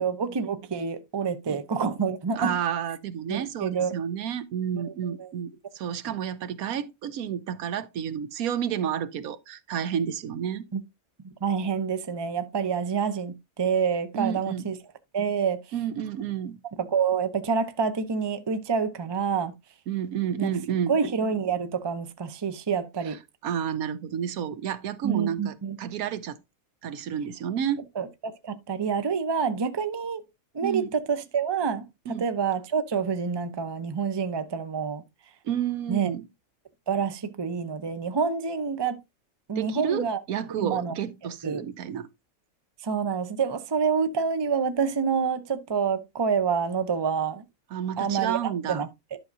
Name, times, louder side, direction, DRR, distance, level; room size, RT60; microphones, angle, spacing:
voice 1, 0.0-2.5 3.3-3.9 4.7-5.3 10.7-10.8 11.4-14.8 15.1-15.6 16.8-19.5 20.4-20.5 20.9-23.2 25.0-25.8 28.0-30.2 30.5-35.0 35.9-36.1 36.9-39.0 39.5-40.2 40.6-40.9 41.4-41.6 42.8-47.4 48.0-49.2, right 6 dB, 30° right, 0.5 m, -27 dB
voice 2, 2.3-10.7 14.1-14.7 15.7-16.6 19.9-20.9 23.4-26.4 26.8-27.8 30.6-30.9 32.1-32.3 35.4-36.3 39.6-42.1 47.7-48.8, right 9 dB, 85° right, 1.2 m, -30 dB
11.0 x 6.1 x 2.6 m
omnidirectional pair, 1.5 m